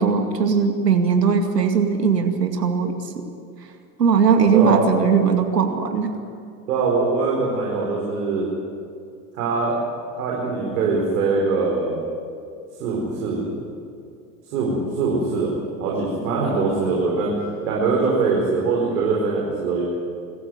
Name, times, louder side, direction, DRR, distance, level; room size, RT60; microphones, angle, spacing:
voice 1, 0.0-2.9 4.0-6.1, right 6 dB, 85° right, 5 dB, 2.3 m, -19 dB
voice 2, 4.4-4.8 6.7-8.5 9.3-9.8 10.2-12.0 12.8-13.6 14.5-19.8, right 4 dB, 65° right, -3 dB, 5.0 m, -22 dB
24.5 x 14.5 x 9.6 m, 2.3 s
hypercardioid pair, 85°, 47 cm